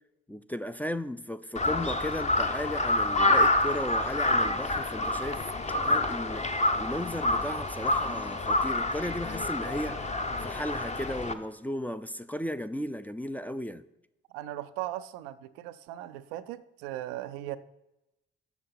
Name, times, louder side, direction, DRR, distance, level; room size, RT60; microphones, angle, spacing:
voice 1, 0.3-5.4 5.8-13.8, equal, 5° left, 0.4 m, -35 dB
Crow, 1.6-11.3, left 2 dB, 25° left, 0.8 m, -28 dB
voice 2, 14.3-17.6, right 14 dB, 80° right, 0.5 m, -38 dB
7.0 x 6.2 x 5.7 m
hypercardioid pair, 45°, 30 cm